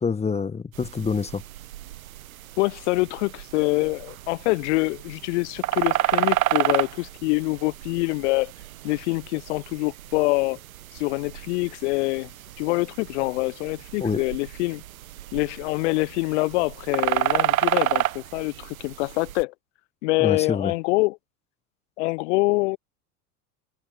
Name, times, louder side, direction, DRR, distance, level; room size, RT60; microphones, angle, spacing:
voice 1, 0.0-1.4 14.0-14.2 20.2-20.7, left 5 dB, 15° left, 1.5 m, -26 dB
sound 1, 0.7-19.4, right 13 dB, 65° right, 1.2 m, -30 dB
voice 2, 2.6-8.5 8.8-10.6 10.9-12.3 12.6-14.8 15.3-19.5 20.0-21.2 22.0-22.8, left 24 dB, 50° left, 1.2 m, -25 dB
open air
figure-of-eight pair, 80°, 45 cm